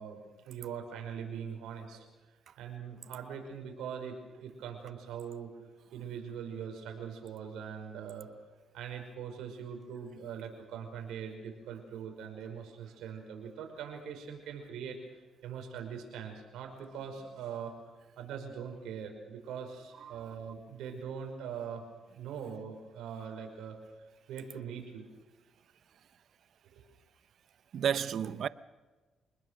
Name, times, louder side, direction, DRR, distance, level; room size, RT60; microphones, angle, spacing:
voice 1, 0.0-2.1 2.6-5.5 5.9-8.3 8.7-17.7 18.2-23.8 24.3-25.1 26.7-26.8, right 7 dB, 85° right, 5.5 m, -42 dB
voice 2, 20.0-20.3 27.7-28.5, right 8 dB, 65° right, 0.8 m, -32 dB
26.5 x 20.5 x 6.5 m
cardioid pair, 90°, 0 cm